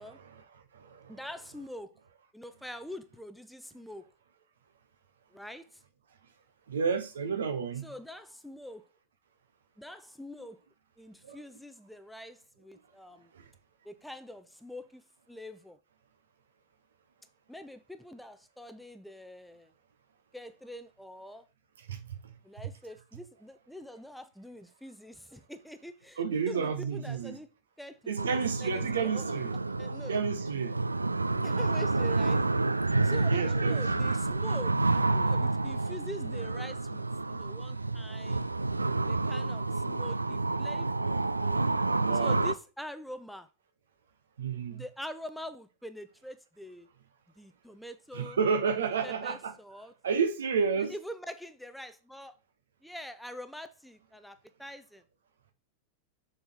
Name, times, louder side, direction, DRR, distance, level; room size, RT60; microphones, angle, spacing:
voice 1, 0.0-1.2 6.7-7.9 11.2-11.4 13.3-13.4 21.8-22.3 26.2-27.4 28.1-29.5 30.1-30.8 33.3-34.2 42.0-42.4 44.4-44.8 48.1-49.5 50.0-50.9, right 6 dB, 65° right, 1.0 m, -31 dB
voice 2, 1.1-1.9 2.3-4.1 5.3-5.7 7.8-8.9 9.8-10.6 11.0-13.3 13.8-15.0 15.3-15.8 17.5-19.7 20.3-21.5 22.4-27.5 27.8-29.2 29.8-30.2 31.4-32.4 33.0-38.4 39.1-41.7 42.1-43.5 44.7-46.9 47.4-48.4 49.0-49.9 50.9-52.4 52.8-55.0, equal, ahead, 0.6 m, -45 dB
sound 1, 28.2-42.5, right 3 dB, 80° right, 0.3 m, -29 dB
6.9 x 4.4 x 3.5 m
figure-of-eight pair, 90°, 0 cm